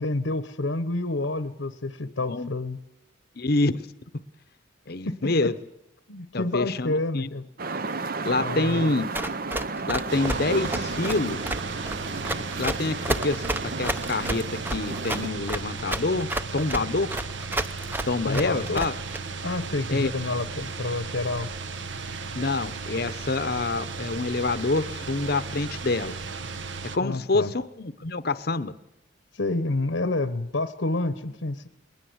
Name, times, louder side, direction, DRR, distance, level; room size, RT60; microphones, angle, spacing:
voice 1, 0.0-2.8 5.1-5.5 6.1-7.4 8.4-8.9 18.3-18.9 19.4-21.5 27.0-27.5 29.3-31.7, left 2 dB, 70° left, 12 dB, 1.0 m, -29 dB
voice 2, 3.4-3.8 4.9-5.6 6.3-7.3 8.2-9.1 9.9-11.4 12.6-16.3 16.5-17.1 18.1-18.9 19.9-20.1 22.3-26.1 26.9-28.7, left 3 dB, 50° left, 13 dB, 0.9 m, -27 dB
sound 1, 7.6-15.3, right 3 dB, 45° right, 0.7 m, -33 dB
Run, 9.1-19.2, right 1 dB, 10° right, 0.7 m, -30 dB
sound 2, 10.1-27.0, right 4 dB, 60° right, 1.0 m, -35 dB
21.0 x 20.0 x 8.0 m, 0.89 s
head